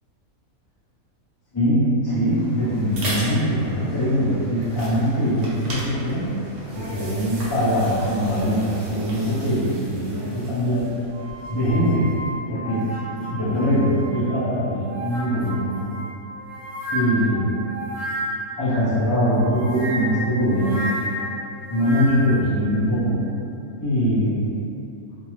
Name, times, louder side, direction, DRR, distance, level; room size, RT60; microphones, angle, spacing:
voice 1, 1.5-6.3 6.7-10.9 11.5-12.1 12.5-12.8 13.1-15.9 16.9-17.6 18.6-20.9 21.6-23.2 23.8-24.4, equal, 35° left, -11 dB, 0.4 m, -22 dB
sound 1, 2.1-12.0, right 1 dB, 60° right, 0.9 m, -36 dB
sound 2, 11.1-14.4 14.8-18.6 19.4-22.4, equal, 80° right, 1.2 m, -32 dB
3.5 x 2.0 x 3.1 m, 2.8 s
omnidirectional pair, 1.6 m